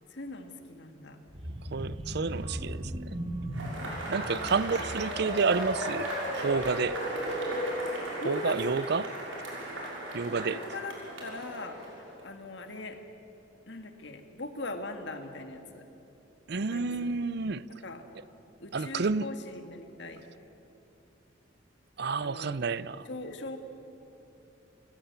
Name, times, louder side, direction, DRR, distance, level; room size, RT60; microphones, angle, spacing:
voice 1, 0.1-1.2 3.8-3.9 4.3-4.8 8.2-8.7 10.5-11.0 11.2-13.0 13.7-15.8 16.6-17.1 17.8-18.0 18.6-20.2 22.2-22.6 23.1-23.6, left 2 dB, 60° left, 2.0 m, -40 dB
sound 1, 1.3-7.0 7.4-7.7 8.0-8.1, equal, 30° right, 1.7 m, -39 dB
voice 2, 1.7-3.1 4.1-7.0 8.2-9.1 10.1-10.6 16.5-17.7 18.7-19.3 22.0-23.1, right 4 dB, 55° right, 0.6 m, -30 dB
Cheering / Applause / Crowd, 3.5-12.2, right 1 dB, 85° right, 6.1 m, -35 dB
29.0 x 16.0 x 8.3 m
head